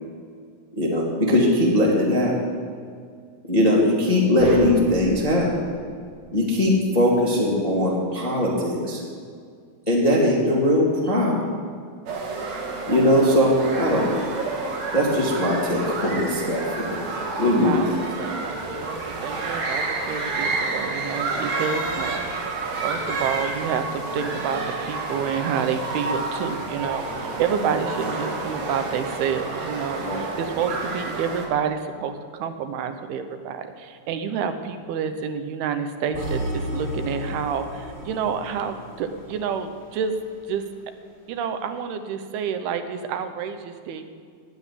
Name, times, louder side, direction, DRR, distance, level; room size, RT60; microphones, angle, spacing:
voice 1, 0.7-2.3 3.4-5.5 6.3-9.0 9.9-11.4 12.9-14.2 14.9-18.0 30.0-30.2, left 1 dB, 20° left, -4 dB, 1.0 m, -20 dB
sound 1, 4.4-6.8, equal, 30° right, 2.3 m, -37 dB
sound 2, 12.1-31.5, right 3 dB, 55° right, 2.6 m, -30 dB
voice 2, 17.6-22.3 22.8-40.2 40.5-40.6 41.3-44.2, right 7 dB, 85° right, 8 dB, 2.8 m, -29 dB
sound 3, 36.1-40.3, equal, 5° right, 3.5 m, -33 dB
10.0 x 9.4 x 9.8 m, 2.1 s
omnidirectional pair, 4.4 m